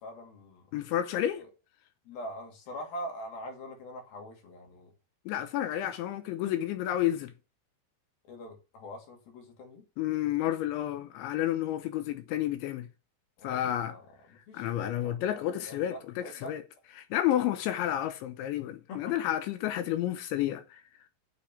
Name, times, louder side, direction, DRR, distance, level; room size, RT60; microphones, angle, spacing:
voice 1, 0.0-0.7 1.4-1.5 2.1-4.9 5.8-5.9 6.4-6.5 8.2-9.9 13.4-16.5 18.9-19.1, left 1 dB, 55° left, 4.0 m, -43 dB
voice 2, 0.7-1.4 5.3-7.3 10.0-12.9 13.4-13.9 14.5-16.6 17.0-20.8, left 12 dB, 80° left, 2.9 m, -30 dB
7.3 x 6.9 x 7.1 m
omnidirectional pair, 5.8 m